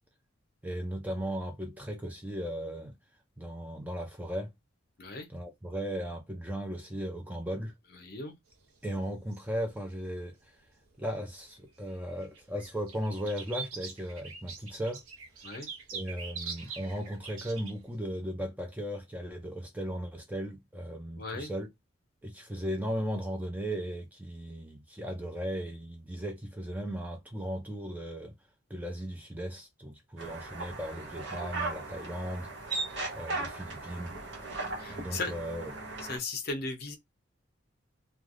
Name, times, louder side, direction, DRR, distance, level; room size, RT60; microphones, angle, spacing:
voice 1, 0.6-3.0 3.4-4.5 5.3-7.7 8.8-10.6 11.0-15.0 15.9-21.7 22.2-28.4 28.7-32.5 33.1-34.1 34.9-35.7, equal, 10° right, 0.4 m, -36 dB
voice 2, 7.9-8.4 15.4-15.7 21.2-21.5 34.8-35.3 36.0-37.0, left 3 dB, 45° left, 0.6 m, -37 dB
sound 1, 8.5-11.0 11.4-17.9, right 5 dB, 85° right, 0.8 m, -44 dB
sound 2, 30.2-36.2, right 3 dB, 55° right, 1.1 m, -38 dB
3.1 x 2.3 x 2.4 m
head